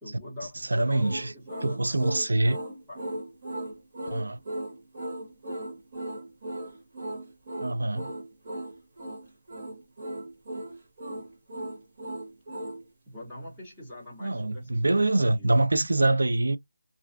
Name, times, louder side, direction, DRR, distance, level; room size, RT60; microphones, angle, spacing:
voice 1, 0.0-2.1 2.9-3.2 13.1-15.6, left 1 dB, ahead, 0.8 m, -44 dB
voice 2, 0.7-1.3 1.6-2.6 4.1-4.4 7.6-8.1 14.2-16.6, right 2 dB, 85° right, 0.5 m, -24 dB
sound 1, 1.0-12.8, right 1 dB, 30° right, 1.1 m, -37 dB
2.4 x 2.3 x 2.3 m
figure-of-eight pair, 175°, 0 cm